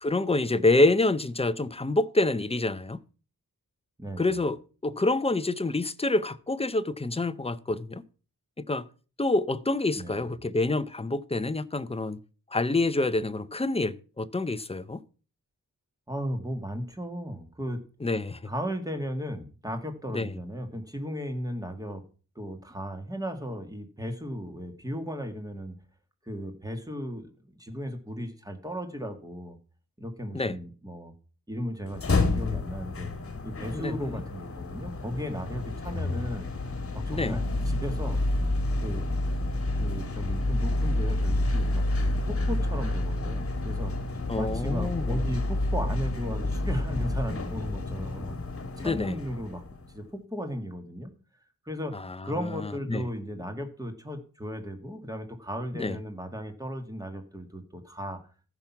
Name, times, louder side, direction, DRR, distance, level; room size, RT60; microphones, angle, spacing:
voice 1, 0.0-3.0 4.2-4.6 4.8-8.0 8.7-8.9 9.2-12.2 12.5-15.0 18.0-18.5 20.1-20.3 30.3-30.6 33.7-34.2 37.1-37.4 44.3-45.2 48.8-49.2 51.9-52.2 52.5-53.0 55.7-56.0, left 2 dB, 15° left, 0.6 m, -27 dB
voice 2, 4.0-4.4 10.0-10.3 16.1-17.8 18.5-22.0 22.4-25.8 26.3-29.6 30.0-31.1 31.5-33.1 33.4-36.5 36.9-38.2 38.8-39.1 39.8-44.0 44.4-48.4 48.8-49.6 49.9-51.1 51.7-52.0 52.2-58.2, equal, 10° right, 1.9 m, -36 dB
sound 1, 31.8-50.0, left 2 dB, 40° left, 1.6 m, -29 dB
14.5 x 6.1 x 5.8 m
wide cardioid pair, 125°, 35 cm